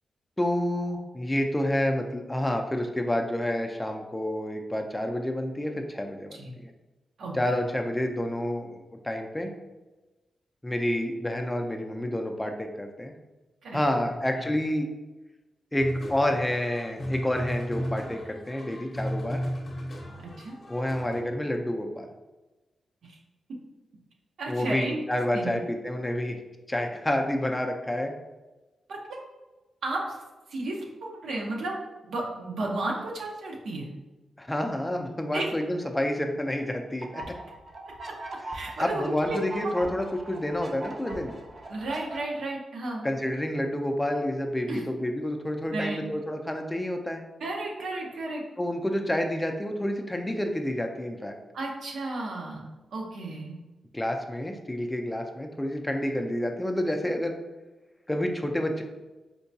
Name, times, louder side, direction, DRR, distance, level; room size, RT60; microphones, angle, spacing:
voice 1, 0.4-6.5 7.3-9.5 10.6-13.1 13.7-14.9 15.7-19.4 20.7-22.1 24.5-26.4 26.7-28.1 34.4-37.2 38.8-41.4 43.0-47.2 48.6-51.4 53.9-57.4 58.1-58.8, left 1 dB, 10° left, 3 dB, 0.4 m, -29 dB
sound 1, 15.8-21.2, equal, 45° left, 0.7 m, -34 dB
voice 2, 20.2-20.6 23.0-23.2 24.4-25.0 25.3-25.6 28.9-29.0 29.8-30.2 30.5-31.8 32.0-33.9 35.3-35.5 38.5-39.4 41.7-43.1 44.7-44.8 45.7-46.2 47.4-48.4 51.5-53.6, right 2 dB, 80° right, -1 dB, 0.8 m, -33 dB
sound 2, 37.0-42.2, right 2 dB, 45° right, 0.6 m, -41 dB
4.4 x 2.2 x 2.7 m, 1.1 s
cardioid pair, 95°, 0 cm